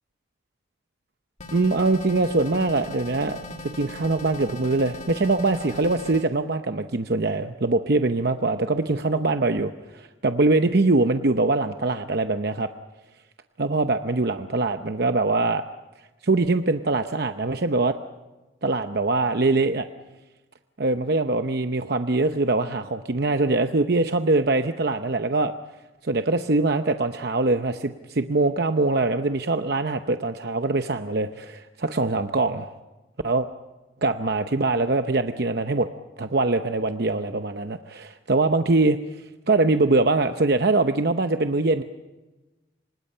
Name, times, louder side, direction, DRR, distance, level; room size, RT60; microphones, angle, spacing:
sound 1, 1.4-6.2, left 2 dB, 35° left, 2.3 m, -39 dB
voice 1, 1.5-3.4 3.8-12.7 13.6-15.6 16.2-18.0 18.6-19.9 20.8-25.5 26.0-32.7 33.2-33.5 34.0-35.9 36.2-39.0 39.5-41.8, right 2 dB, 55° right, 7 dB, 0.8 m, -23 dB
28.5 x 25.5 x 5.6 m, 1.1 s
head